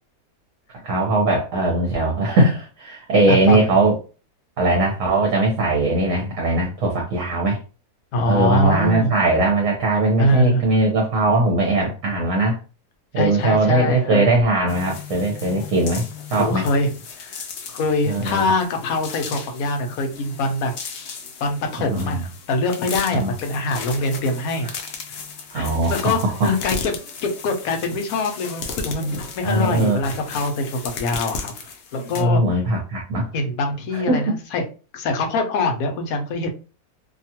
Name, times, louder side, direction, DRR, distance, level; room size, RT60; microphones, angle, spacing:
voice 1, 0.8-3.9 4.6-7.6 8.3-12.6 13.1-16.1 16.3-16.7 18.1-18.4 21.9-22.2 23.2-23.3 25.5-26.1 26.4-26.5 29.4-30.0 32.2-33.3 33.9-34.4, right 2 dB, 60° right, -1 dB, 1.0 m, -20 dB
voice 2, 3.3-3.7 8.1-9.1 10.2-10.6 13.1-14.3 16.3-16.9 17.2-17.4 17.7-20.7 21.4-24.7 25.5-31.5 31.9-32.6 33.3-34.7 34.9-36.5, left 2 dB, 65° left, 5 dB, 0.9 m, -23 dB
sound 1, 14.7-32.2, left 5 dB, 85° left, 0.6 m, -35 dB
2.8 x 2.3 x 2.8 m, 0.34 s
omnidirectional pair, 1.8 m